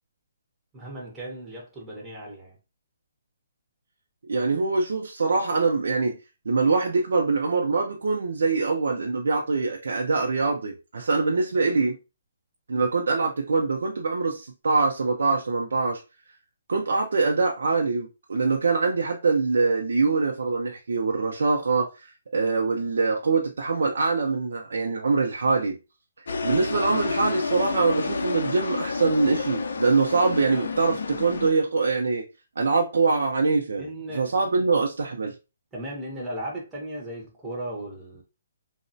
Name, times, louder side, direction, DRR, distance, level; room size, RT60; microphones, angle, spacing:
voice 1, 0.7-2.6 33.8-34.3 34.6-34.7 35.7-38.2, right 1 dB, 5° right, 0.5 m, -36 dB
voice 2, 4.3-6.2 6.5-12.0 12.7-16.0 16.7-25.7 26.2-32.2 32.6-33.9 34.1-35.3, right 4 dB, 80° right, 0.4 m, -24 dB
sound 1, 26.3-31.5, left 4 dB, 70° left, 0.4 m, -30 dB
3.1 x 2.0 x 2.5 m
hypercardioid pair, 175°, 0 cm